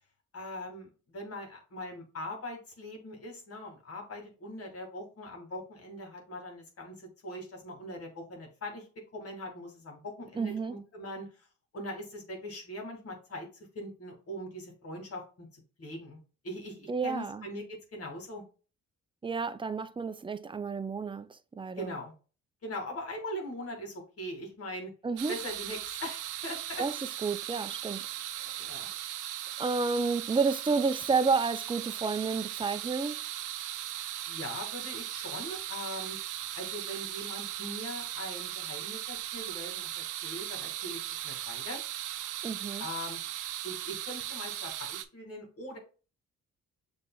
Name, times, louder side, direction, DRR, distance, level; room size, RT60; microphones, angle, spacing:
voice 1, 0.3-8.9 9.1-11.5 11.7-13.5 13.7-16.2 16.4-18.4 21.8-22.1 22.6-24.9 25.3-26.8 28.6-28.9 34.3-36.2 36.5-41.8 42.8-43.2 43.6-45.8, left 1 dB, 50° left, 2.0 m, -41 dB
voice 2, 10.4-10.7 16.9-17.5 19.2-22.0 25.0-25.3 26.8-28.1 28.4-28.6 29.6-33.2 42.4-42.9, right 4 dB, 15° right, 0.4 m, -31 dB
sound 1, 25.2-45.0, right 13 dB, 80° right, 0.6 m, -38 dB
6.8 x 3.2 x 2.3 m
cardioid pair, 90°, 30 cm